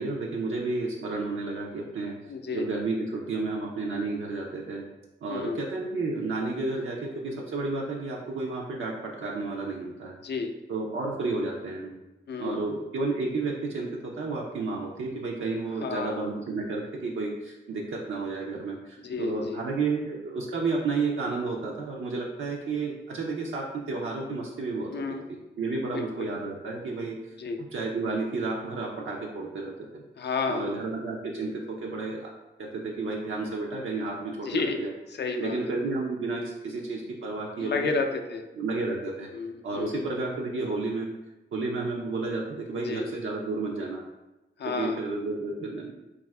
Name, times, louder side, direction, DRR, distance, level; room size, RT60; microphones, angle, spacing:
voice 1, 0.0-2.1 2.5-4.8 5.2-10.2 10.7-11.9 12.4-24.9 25.3-27.2 27.7-30.0 30.5-32.3 32.6-34.9 35.4-38.0 38.5-39.3 39.6-41.1 41.5-44.0 44.6-46.0, right 3 dB, 75° right, -1 dB, 0.4 m, -31 dB
voice 2, 2.3-2.7 5.3-5.6 10.2-10.5 12.3-12.6 15.8-16.2 19.0-19.6 24.9-25.2 25.9-26.3 27.4-27.6 30.2-30.7 34.4-34.9 35.2-35.6 37.6-38.4 39.3-40.0 42.7-43.1 44.6-45.0, left 4 dB, 55° left, 5 dB, 0.4 m, -31 dB
2.6 x 2.4 x 3.2 m, 1.0 s
cardioid pair, 70°, 20 cm